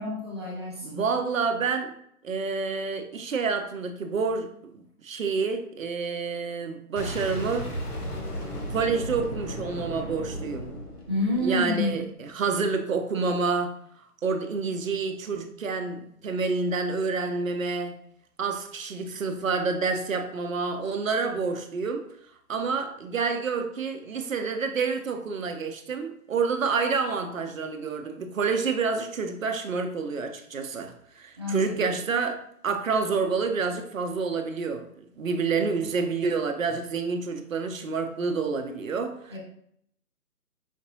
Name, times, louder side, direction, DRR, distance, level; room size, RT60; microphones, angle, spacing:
voice 1, 0.0-1.0 11.1-11.9 31.4-32.0 39.3-39.4, left 2 dB, 20° right, -5 dB, 0.7 m, -29 dB
voice 2, 0.8-1.9 2.2-7.7 8.7-10.7 11.4-13.7 14.2-18.0 18.4-22.1 22.5-32.4 32.6-34.9 35.2-39.3, right 4 dB, 60° right, 6 dB, 0.6 m, -28 dB
Boom, 7.0-11.8, equal, 75° left, 1.3 m, -35 dB
5.2 x 2.6 x 2.7 m, 0.68 s
figure-of-eight pair, 150°, 46 cm